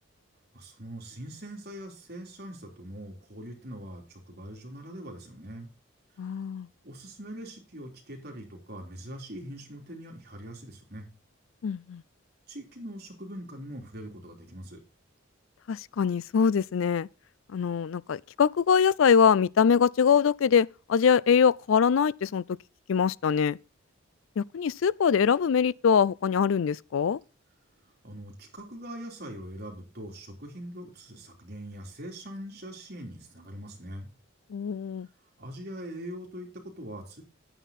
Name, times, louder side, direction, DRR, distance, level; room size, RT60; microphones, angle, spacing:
voice 1, 0.5-5.7 6.2-6.3 6.8-11.1 12.5-14.8 28.0-34.1 35.4-37.2, right 1 dB, 50° right, 3.4 m, -42 dB
voice 2, 6.2-6.7 11.6-12.0 15.7-17.1 17.5-22.4 22.9-23.6 24.4-27.2 34.5-35.1, left 6 dB, 75° left, 0.4 m, -23 dB
9.3 x 9.0 x 4.2 m
head